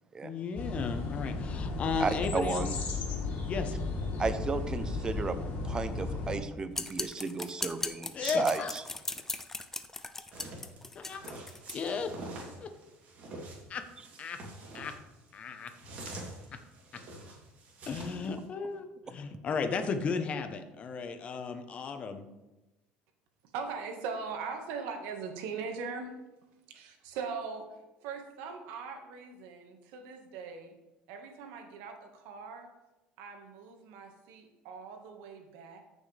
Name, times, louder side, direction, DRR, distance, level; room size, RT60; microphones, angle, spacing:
voice 1, 0.2-2.7 3.5-3.7 8.1-8.7 10.9-11.3 11.7-12.1 13.7-13.8 14.2-14.4 14.7-14.9 15.3-15.7 17.9-22.3, left 5 dB, 35° left, 7 dB, 1.0 m, -34 dB
sound 1, 0.6-6.4, left 3 dB, 55° left, 2.6 m, -34 dB
voice 2, 2.0-2.7 4.2-5.4 5.6-8.8, right 4 dB, 20° right, 11 dB, 0.7 m, -33 dB
sound 2, 6.7-11.8, left 2 dB, 10° left, 0.5 m, -38 dB
sound 3, 10.3-18.4, right 2 dB, 45° right, 3.1 m, -46 dB
voice 3, 23.5-26.2 26.7-27.7 28.0-30.7 31.1-32.7 33.2-35.8, right 5 dB, 85° right, 4 dB, 1.7 m, -40 dB
14.0 x 6.3 x 3.4 m, 1.0 s
cardioid pair, 135°, 4 cm